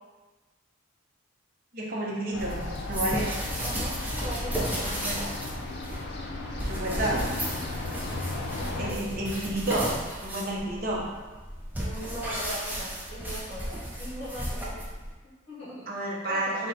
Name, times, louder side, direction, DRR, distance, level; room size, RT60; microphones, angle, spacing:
voice 1, 1.7-3.3 5.0-5.2 6.7-7.3 8.8-9.9 10.2-11.1 15.9-16.7, right 1 dB, 45° right, -4 dB, 0.7 m, -30 dB
sound 1, 2.3-8.9, left 2 dB, 50° left, 0.4 m, -36 dB
sound 2, 2.4-15.1, right 1 dB, 10° right, 0.5 m, -34 dB
voice 2, 4.2-4.8 5.2-5.4 7.9-8.0 8.5-8.9 11.8-14.8 15.2-15.9 16.3-16.6, equal, 30° left, -9 dB, 1.0 m, -40 dB
3.8 x 2.2 x 4.0 m, 1.3 s
head